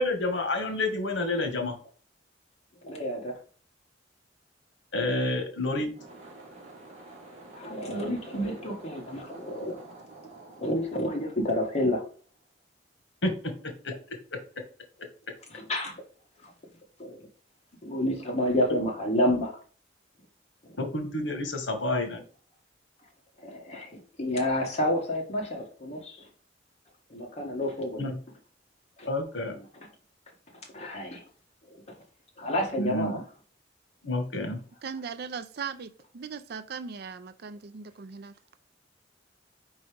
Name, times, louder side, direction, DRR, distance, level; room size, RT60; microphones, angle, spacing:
voice 1, 0.0-1.7 4.9-5.9 13.2-13.9 14.3-14.4 18.7-18.8 20.8-22.2 28.0-28.2 29.0-29.6 32.8-33.2 34.0-34.6, left 2 dB, 80° left, 1.4 m, -29 dB
voice 2, 2.8-3.4 7.5-9.7 10.6-12.0 15.5-15.9 16.4-16.5 17.0-17.2 17.8-19.6 20.6-20.8 23.4-26.3 27.1-28.1 29.0-29.1 30.7-31.2 31.7-32.0 32.4-33.2, left 1 dB, 35° left, 1.8 m, -29 dB
sound 1, 5.9-12.4, right 2 dB, 40° right, 2.2 m, -49 dB
voice 3, 34.8-38.3, right 6 dB, 60° right, 0.5 m, -38 dB
4.8 x 4.0 x 5.1 m
head